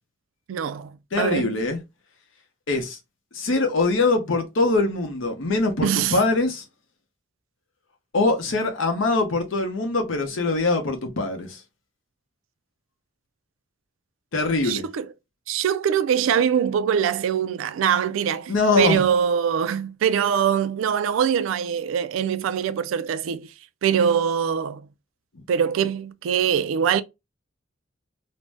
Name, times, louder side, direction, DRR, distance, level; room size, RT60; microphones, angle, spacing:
voice 1, 0.5-1.6 5.8-6.2 14.6-15.1 15.5-23.5 23.8-24.9 25.5-27.0, right 8 dB, 90° right, 0.3 m, -23 dB
voice 2, 1.1-1.8 2.7-3.0 3.3-6.6 8.1-11.6 14.3-14.9 18.5-19.0, left 3 dB, 80° left, 0.8 m, -23 dB
2.6 x 2.1 x 3.3 m
head